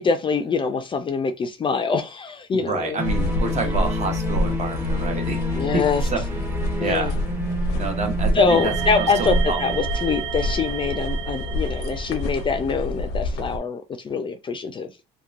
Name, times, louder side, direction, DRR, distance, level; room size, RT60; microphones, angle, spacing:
voice 1, 0.0-3.0 5.5-6.0 6.8-7.1 8.3-14.9, left 5 dB, 30° left, 0.4 m, -24 dB
voice 2, 2.5-5.4 5.7-5.8 6.1-6.2 6.8-7.2 7.8-9.6, right 3 dB, 40° right, 0.9 m, -28 dB
sound 1, 3.0-13.6, equal, 90° left, 0.5 m, -27 dB
sound 2, 3.0-9.8, left 2 dB, 15° right, 0.8 m, -30 dB
sound 3, 8.5-12.8, right 10 dB, 85° right, 0.4 m, -32 dB
2.8 x 2.2 x 2.4 m
cardioid pair, 110°, 17 cm